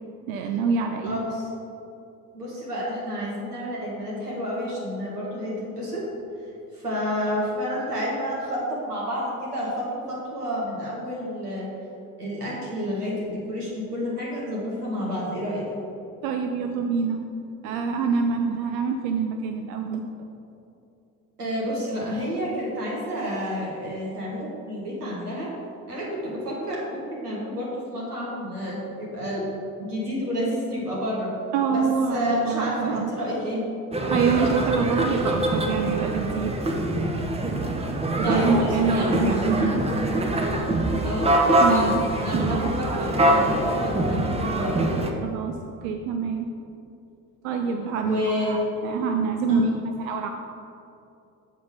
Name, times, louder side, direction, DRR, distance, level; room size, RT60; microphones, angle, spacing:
voice 1, 0.3-1.2 16.2-17.2 17.6-20.0 31.5-33.1 34.1-36.5 38.1-39.8 41.6-42.0 42.3-42.7 45.2-45.5 45.8-46.5 47.4-49.7 50.0-50.3, right 5 dB, 65° right, 5 dB, 0.6 m, -26 dB
voice 2, 1.0-1.4 2.3-6.1 6.7-11.7 12.2-15.7 21.4-25.5 25.9-29.4 29.8-31.3 31.7-33.6 38.2-39.3 41.0-41.3 41.7-44.8 48.0-48.6 49.5-49.6, equal, 85° right, -5 dB, 1.6 m, -30 dB
sound 1, 33.9-45.1, right 1 dB, 15° right, 0.7 m, -24 dB
7.3 x 4.6 x 5.1 m, 2.7 s
figure-of-eight pair, 50°, 45 cm